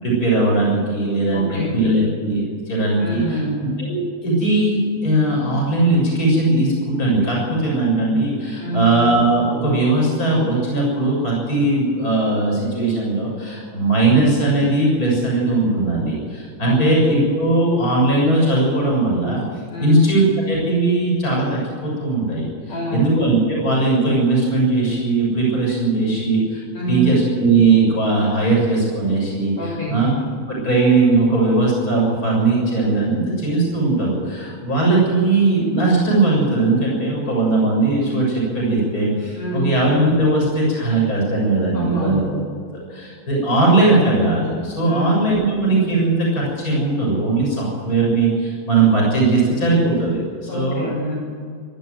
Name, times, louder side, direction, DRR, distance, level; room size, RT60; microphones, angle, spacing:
voice 1, 0.0-3.4 3.8-19.4 19.8-26.6 26.9-29.5 29.9-30.1 30.5-42.2 42.9-50.2 50.5-50.9, right 2 dB, 25° left, -3 dB, 7.3 m, -19 dB
voice 2, 1.3-1.8 3.0-3.7 8.6-8.9 16.6-17.0 19.7-20.0 22.7-23.2 26.7-27.1 29.6-30.1 39.3-39.7 41.7-42.3 44.9-45.2 50.5-51.1, right 1 dB, 45° left, -4 dB, 7.5 m, -26 dB
23.0 x 13.0 x 9.4 m, 2.1 s
omnidirectional pair, 3.6 m